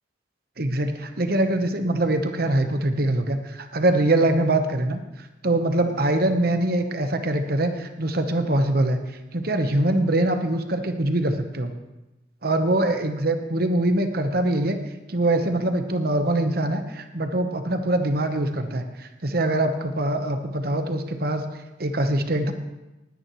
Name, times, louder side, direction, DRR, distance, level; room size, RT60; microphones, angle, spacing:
voice 1, 0.6-5.0 5.4-9.0 9.3-11.7 12.4-14.8 15.1-21.4 21.8-22.5, right 1 dB, 55° right, 7 dB, 1.1 m, -23 dB
19.5 x 9.7 x 3.1 m, 1.0 s
head